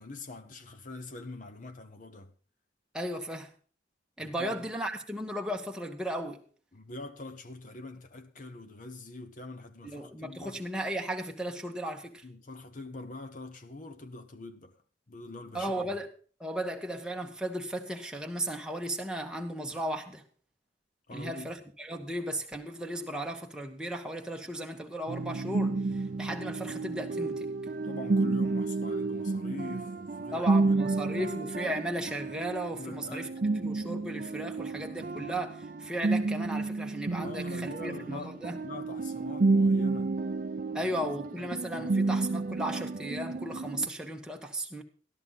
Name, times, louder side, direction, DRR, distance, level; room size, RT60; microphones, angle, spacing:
voice 1, 0.0-2.3 4.2-4.7 6.7-10.6 12.2-14.8 15.1-16.0 21.1-21.5 27.8-31.3 32.7-33.3 37.2-38.3 38.6-40.2 40.8-42.1, left 2 dB, 45° left, 1.0 m, -44 dB
voice 2, 2.9-3.5 4.2-6.4 9.8-12.2 15.5-16.1 16.4-20.2 21.1-27.5 30.3-33.3 33.6-38.6 40.7-44.8, right 1 dB, 5° right, 1.2 m, -35 dB
sound 1, 25.1-43.9, right 3 dB, 45° right, 0.5 m, -31 dB
13.0 x 12.5 x 4.0 m
head